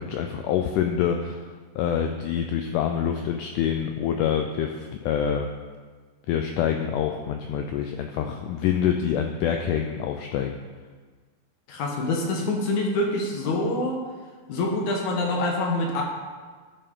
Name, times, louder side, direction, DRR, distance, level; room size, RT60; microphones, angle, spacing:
voice 1, 0.0-1.5 1.8-5.5 6.3-10.6, left 8 dB, 90° left, 5 dB, 1.8 m, -26 dB
voice 2, 11.7-14.0 14.5-16.0, left 2 dB, 65° left, 1 dB, 2.1 m, -25 dB
12.5 x 6.9 x 3.7 m, 1.4 s
omnidirectional pair, 4.3 m